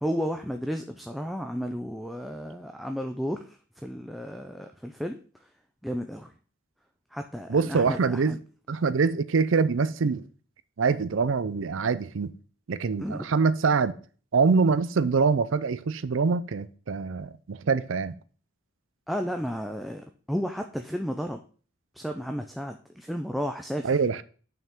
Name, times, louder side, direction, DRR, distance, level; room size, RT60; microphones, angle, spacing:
voice 1, 0.0-5.5 5.8-6.3 7.1-8.4 13.0-13.3 19.1-21.4 21.9-24.0, equal, ahead, 0.4 m, -33 dB
voice 2, 7.5-8.4 8.7-10.2 10.8-12.3 12.7-13.9 14.3-18.1 23.8-24.2, right 4 dB, 65° right, 0.5 m, -24 dB
9.2 x 5.7 x 3.6 m
head